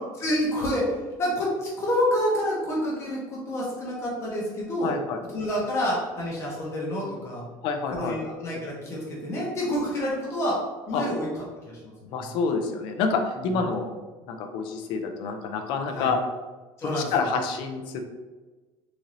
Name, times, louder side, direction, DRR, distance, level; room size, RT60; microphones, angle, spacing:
voice 1, 0.2-4.9 5.3-7.4 7.9-10.6 10.9-11.3 11.6-12.1 13.4-13.5 15.9-16.1 16.8-17.1, equal, 25° left, -5 dB, 0.9 m, -28 dB
voice 2, 4.8-5.2 7.6-8.2 10.9-11.0 12.1-13.9 14.3-16.2 17.0-18.0, left 5 dB, 55° left, 5 dB, 0.4 m, -28 dB
3.9 x 2.6 x 3.1 m, 1.2 s
cardioid pair, 180°, 10 cm